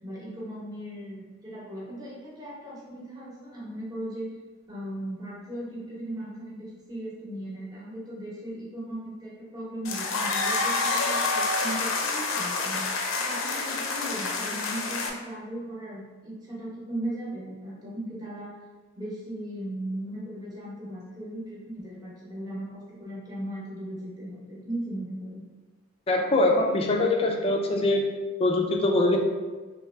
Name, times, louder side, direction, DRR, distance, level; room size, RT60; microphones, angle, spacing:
voice 1, 0.0-4.3 4.7-18.6 18.9-25.4, right 1 dB, 20° right, -6 dB, 1.0 m, -37 dB
sound 1, 9.8-15.1, left 3 dB, 80° left, 0.6 m, -28 dB
voice 2, 26.1-28.0 28.4-29.2, left 2 dB, 30° left, 1 dB, 0.4 m, -23 dB
3.5 x 3.0 x 3.3 m, 1.3 s
head